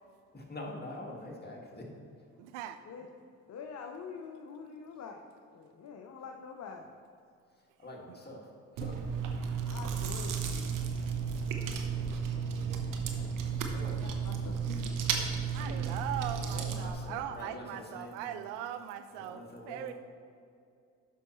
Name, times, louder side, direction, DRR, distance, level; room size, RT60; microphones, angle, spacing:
voice 1, 0.3-1.9 7.8-8.5 8.8-9.0 13.1-14.0 15.6-15.8 16.3-18.4 19.2-19.9, left 1 dB, 30° left, -1 dB, 2.0 m, -45 dB
voice 2, 2.4-2.8 8.1-8.2 13.8-14.0 15.5-19.9, right 10 dB, 90° right, 10 dB, 0.5 m, -40 dB
voice 3, 3.5-5.2 5.5-6.8 9.7-10.4 13.9-14.9, left 6 dB, 55° left, 3 dB, 0.8 m, -45 dB
Chewing mastication, 8.8-16.9, right 6 dB, 65° right, 1.0 m, -33 dB
12.0 x 5.5 x 3.1 m, 2.4 s
hypercardioid pair, 55°, 35 cm